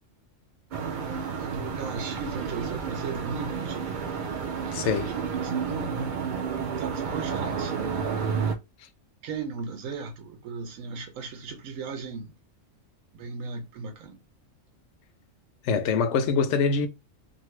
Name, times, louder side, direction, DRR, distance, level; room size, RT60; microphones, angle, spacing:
sound 1, 0.7-8.6, right 6 dB, 60° right, 0.5 m, -31 dB
voice 1, 1.1-3.9 4.1-4.3 4.7-6.2 6.8-7.7 8.1-8.3 9.2-12.3 13.2-14.2, right 5 dB, 90° right, 1.0 m, -37 dB
voice 2, 4.7-5.1 15.6-16.9, left 5 dB, 70° left, 0.8 m, -24 dB
2.6 x 2.5 x 3.1 m
omnidirectional pair, 1.3 m